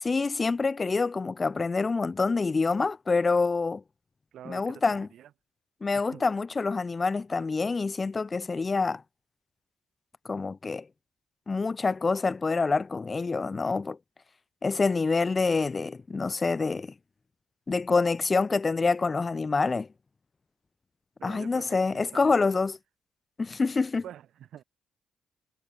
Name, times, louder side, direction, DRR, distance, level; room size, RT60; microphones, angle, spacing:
voice 1, 0.0-3.8 4.4-5.1 5.8-9.0 10.2-10.9 11.5-14.0 14.6-16.9 17.7-19.9 21.2-22.8 23.4-24.0, left 4 dB, 30° left, 1.5 m, -26 dB
voice 2, 4.3-5.3 5.9-6.2 21.2-22.3 24.0-24.6, right 11 dB, 70° right, 3.5 m, -46 dB
cardioid pair, 90°, 0 cm